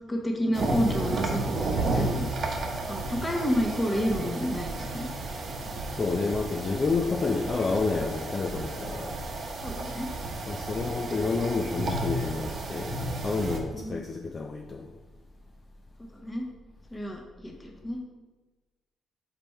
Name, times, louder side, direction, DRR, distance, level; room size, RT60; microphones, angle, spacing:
voice 1, 0.1-2.5 2.9-5.1 9.6-10.1 13.7-14.0 16.1-16.4 16.9-18.0, equal, 15° left, 1 dB, 1.2 m, -30 dB
sound 1, 0.5-13.6, right 2 dB, 55° right, 0.9 m, -32 dB
voice 2, 5.9-9.2 10.5-14.9, left 4 dB, 35° left, 2 dB, 0.5 m, -29 dB
5.1 x 4.4 x 4.4 m, 1.2 s
cardioid pair, 90°, 0 cm